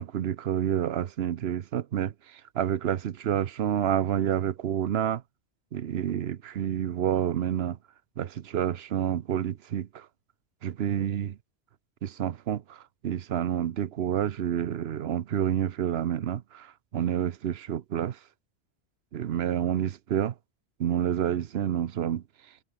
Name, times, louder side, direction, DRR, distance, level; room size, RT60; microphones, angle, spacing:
voice 1, 0.0-5.2 5.7-7.8 8.2-10.1 10.6-11.3 12.0-18.2 19.1-20.3 20.8-22.2, right 10 dB, 70° right, 1.0 m, -29 dB
omnidirectional pair, 1.1 m